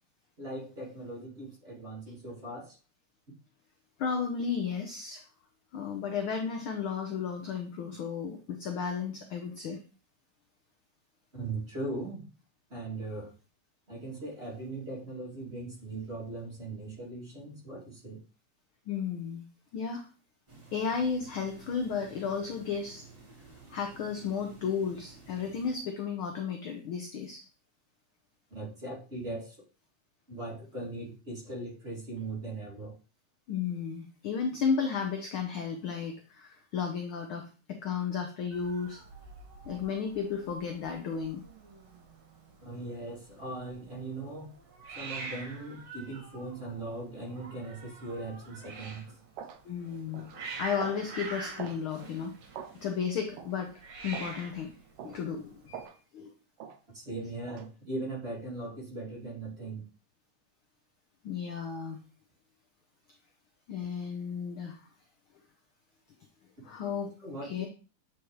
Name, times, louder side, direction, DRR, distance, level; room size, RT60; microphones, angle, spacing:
voice 1, 0.4-2.7 11.3-12.2 12.7-13.3 13.9-18.2 28.5-29.6 30.3-32.9 42.6-44.5 44.9-49.0 56.9-59.8 67.2-67.7, right 2 dB, 20° right, -5 dB, 2.3 m, -39 dB
voice 2, 4.0-5.2 5.7-9.8 18.9-19.4 19.7-20.0 20.7-23.0 23.7-27.4 33.5-39.0 39.6-41.4 49.6-50.3 50.6-52.3 52.8-53.7 54.0-54.7 55.0-56.3 61.2-62.0 63.7-64.8 66.6-67.1 67.4-67.7, left 6 dB, 75° left, 3 dB, 1.2 m, -33 dB
sound 1, 20.5-25.8, right 4 dB, 45° right, 0.4 m, -53 dB
Hiss, 38.5-55.8, right 4 dB, 65° right, 2.5 m, -46 dB
sound 2, 48.6-48.8 49.4-49.6 50.1-50.4 50.8-51.0 51.6-51.8 52.5-52.8 53.4-53.5 54.1-54.4 55.0-55.2 55.7-56.0 56.6-56.8 57.5-57.7, right 8 dB, 80° right, 1.3 m, -43 dB
8.7 x 4.7 x 3.1 m, 0.35 s
omnidirectional pair, 3.3 m